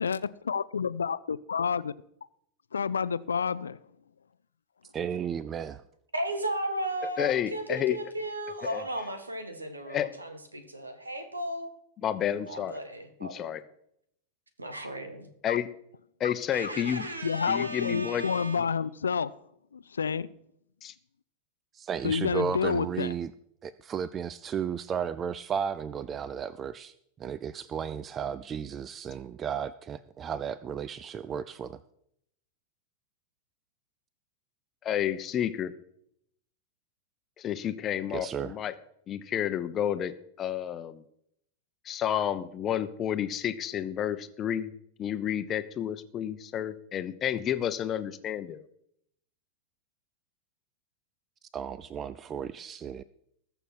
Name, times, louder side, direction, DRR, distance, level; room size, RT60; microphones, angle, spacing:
voice 1, 0.0-1.9 2.7-3.8 15.5-15.6 16.2-16.3 16.6-16.7 17.2-19.3 19.7-20.3 22.0-23.1, left 6 dB, 70° left, 17 dB, 0.5 m, -29 dB
voice 2, 4.9-5.8 21.7-23.3 23.6-26.9 27.2-31.8 38.1-38.6 51.5-53.0, right 7 dB, 25° right, 16 dB, 0.5 m, -34 dB
voice 3, 6.1-11.7 12.3-13.6 14.6-15.3 16.5-18.6, right 1 dB, 80° right, 8 dB, 1.9 m, -35 dB
voice 4, 7.2-8.0 8.6-8.8 9.9-10.1 12.0-12.8 13.2-13.6 15.4-15.7 16.2-17.1 17.5-18.2 20.8-20.9 34.8-35.7 37.4-38.7 39.1-41.0 41.9-44.7 45.0-48.6, left 10 dB, 30° left, 11 dB, 0.9 m, -30 dB
20.5 x 6.9 x 4.4 m, 0.72 s
figure-of-eight pair, 90°, 0 cm